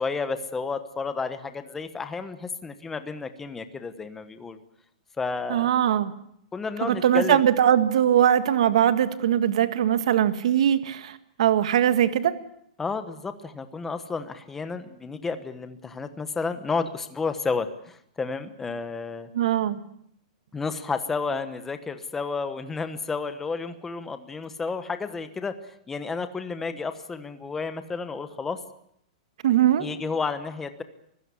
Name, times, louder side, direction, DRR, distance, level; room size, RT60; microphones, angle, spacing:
voice 1, 0.0-4.6 5.2-5.7 6.5-7.4 12.8-19.3 20.5-28.6 29.8-30.8, left 4 dB, 10° left, 10 dB, 1.1 m, -31 dB
voice 2, 5.5-6.1 6.8-12.4 19.3-19.8 29.4-29.9, right 10 dB, 60° right, 11 dB, 1.7 m, -21 dB
25.0 x 16.0 x 9.8 m, 0.71 s
supercardioid pair, 175°, 4 cm